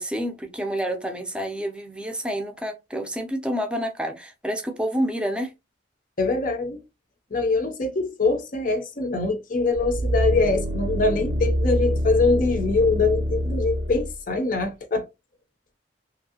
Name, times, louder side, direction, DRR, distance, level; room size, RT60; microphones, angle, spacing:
voice 1, 0.0-5.5, equal, 5° right, 0.6 m, -28 dB
voice 2, 6.2-6.8 7.3-15.1, left 3 dB, 45° left, 0.6 m, -23 dB
sound 1, 9.8-14.1 14.6-14.7, equal, 60° right, 0.6 m, -26 dB
2.8 x 2.6 x 2.7 m
head